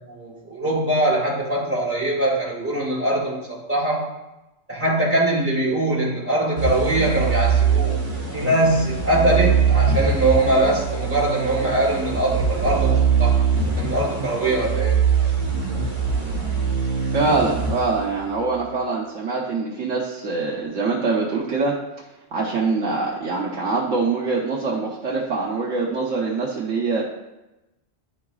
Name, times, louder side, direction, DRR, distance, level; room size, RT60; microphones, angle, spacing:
voice 1, 0.1-4.1 4.7-8.0 8.3-13.3 13.8-15.0, right 1 dB, 10° right, -6 dB, 2.0 m, -22 dB
sound 1, 6.6-18.4, right 6 dB, 25° right, 1.3 m, -22 dB
voice 2, 17.1-21.8 22.3-27.0, right 3 dB, 85° right, -4 dB, 1.2 m, -24 dB
11.0 x 4.8 x 2.3 m, 0.99 s
omnidirectional pair, 1.3 m